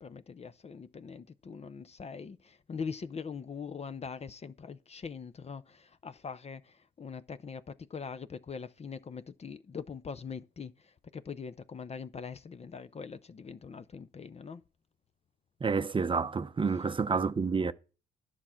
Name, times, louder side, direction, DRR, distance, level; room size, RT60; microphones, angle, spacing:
voice 1, 0.0-14.6, left 5 dB, 30° left, 0.6 m, -42 dB
voice 2, 15.6-17.7, right 5 dB, 25° right, 0.6 m, -29 dB
11.0 x 6.1 x 5.7 m
cardioid pair, 90°, 20 cm